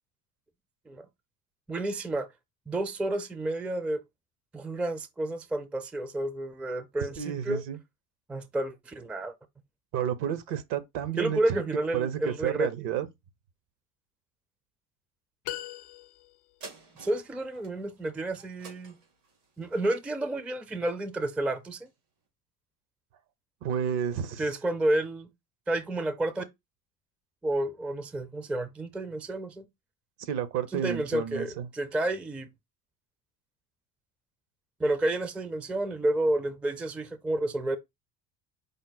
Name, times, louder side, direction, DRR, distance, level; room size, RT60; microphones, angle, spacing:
voice 1, 1.7-2.3 2.7-4.0 4.5-7.6 8.3-9.3 11.2-12.7 17.0-19.0 19.6-21.9 24.4-25.3 25.7-26.4 27.4-29.7 30.7-32.5 34.8-37.8, right 1 dB, 5° right, 0.4 m, -30 dB
voice 2, 7.2-7.8 9.9-11.6 11.9-13.1 23.6-24.4 30.2-31.7, right 9 dB, 65° right, 0.9 m, -31 dB
sound 1, 15.4-16.6, left 14 dB, 75° left, 0.5 m, -39 dB
sound 2, 16.6-21.4 21.9-22.0, right 4 dB, 90° right, 2.1 m, -51 dB
5.2 x 2.1 x 3.9 m
hypercardioid pair, 80°, 44 cm